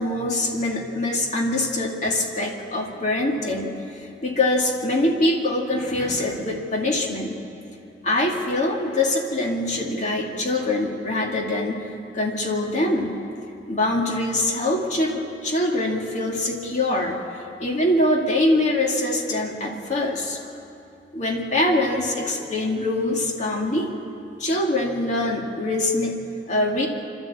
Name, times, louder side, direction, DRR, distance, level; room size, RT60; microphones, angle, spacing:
voice 1, 0.0-7.4 8.0-11.9 12.1-13.2 13.7-17.2 17.6-20.5 21.1-23.9 24.4-26.9, left 1 dB, 45° left, 0 dB, 2.4 m, -24 dB
26.5 x 12.5 x 8.6 m, 2.7 s
head